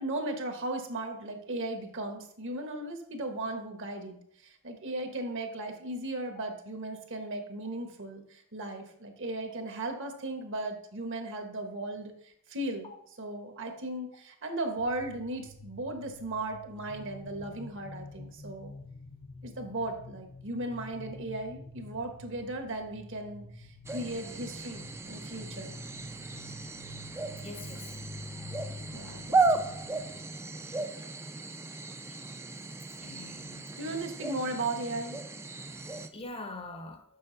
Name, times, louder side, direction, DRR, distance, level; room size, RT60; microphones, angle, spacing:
voice 1, 0.0-12.9 13.2-18.8 19.4-25.7 26.2-26.3 28.9-29.7 33.8-35.2, right 2 dB, 60° right, 1.2 m, -36 dB
sound 1, 14.8-30.7, left 2 dB, 65° left, 0.9 m, -48 dB
sound 2, 23.8-36.1, right 3 dB, 10° right, 0.4 m, -35 dB
voice 2, 27.4-27.9 30.1-30.3 33.0-33.8 36.1-37.0, left 2 dB, 25° left, 0.6 m, -44 dB
6.9 x 6.1 x 3.9 m
head